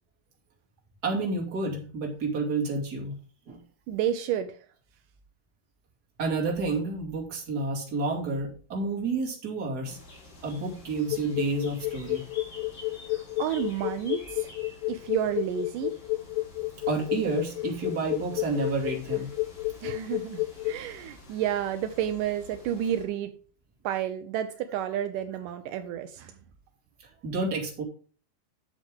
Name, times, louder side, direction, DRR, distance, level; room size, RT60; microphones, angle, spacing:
voice 1, 1.0-3.2 3.5-3.6 6.2-10.0 10.4-12.2 16.9-19.3 27.2-27.8, right 3 dB, 30° right, 0 dB, 2.3 m, -30 dB
voice 2, 3.9-4.6 13.1-14.6 14.9-15.9 19.8-23.3 23.8-26.3, right 10 dB, 90° right, 8 dB, 1.8 m, -30 dB
sound 1, 9.8-23.0, left 2 dB, 40° left, 3.8 m, -49 dB
sound 2, 11.1-20.7, left 21 dB, 85° left, 2.1 m, -30 dB
10.0 x 7.4 x 3.6 m, 0.39 s
omnidirectional pair, 4.6 m